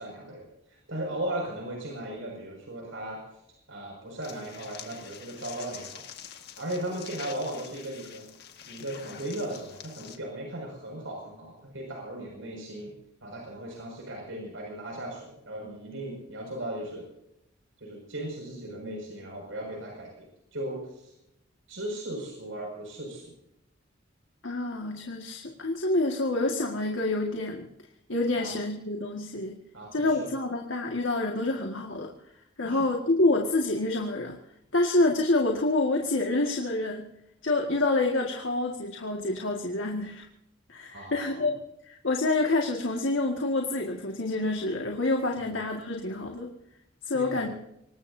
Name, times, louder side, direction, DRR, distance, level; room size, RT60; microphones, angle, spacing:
voice 1, 0.0-3.2 3.7-6.0 6.6-8.3 8.7-12.9 13.2-17.0 17.8-21.1 21.7-23.3 28.3-28.5 29.7-30.3 32.6-32.9 40.9-41.5 45.4-45.5 47.1-47.5, right 1 dB, 85° right, -1 dB, 6.1 m, -37 dB
sound 1, 4.2-10.2, left 8 dB, 55° left, 1.8 m, -46 dB
voice 2, 24.4-27.7 28.1-29.6 29.9-32.1 32.6-34.4 34.7-37.1 37.4-40.3 40.7-46.5 47.1-47.5, left 2 dB, 75° left, 1 dB, 1.9 m, -27 dB
25.5 x 20.0 x 2.8 m, 0.81 s
head